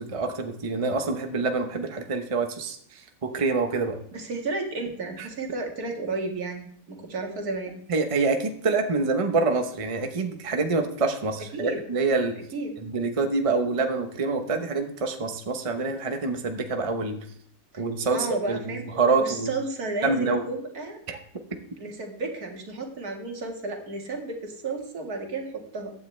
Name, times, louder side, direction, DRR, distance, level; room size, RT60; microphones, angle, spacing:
voice 1, 0.0-4.0 5.2-5.3 7.9-12.4 12.8-17.2 17.8-19.5 20.0-20.4 21.1-21.2, right 3 dB, 25° right, 5 dB, 0.9 m, -26 dB
voice 2, 4.1-7.8 11.5-11.8 12.5-12.7 17.7-17.8 18.1-18.8 19.2-21.0 21.8-25.9, right 3 dB, 70° right, 2 dB, 2.3 m, -32 dB
15.0 x 9.5 x 3.3 m, 0.65 s
omnidirectional pair, 1.6 m